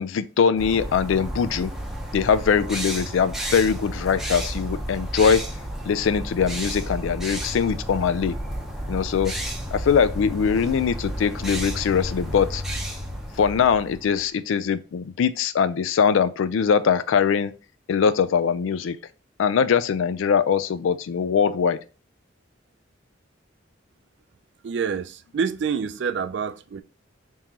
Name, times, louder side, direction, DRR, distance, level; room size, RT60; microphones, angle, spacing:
voice 1, 0.0-1.7 2.1-5.4 5.9-8.3 8.9-9.3 9.7-12.6 13.4-17.5 17.9-19.0 19.4-21.8, left 6 dB, 80° left, 0.3 m, -22 dB
sound 1, 0.6-14.3, equal, ahead, 0.6 m, -32 dB
voice 2, 24.6-26.8, right 6 dB, 60° right, 0.3 m, -27 dB
3.6 x 3.0 x 2.9 m
head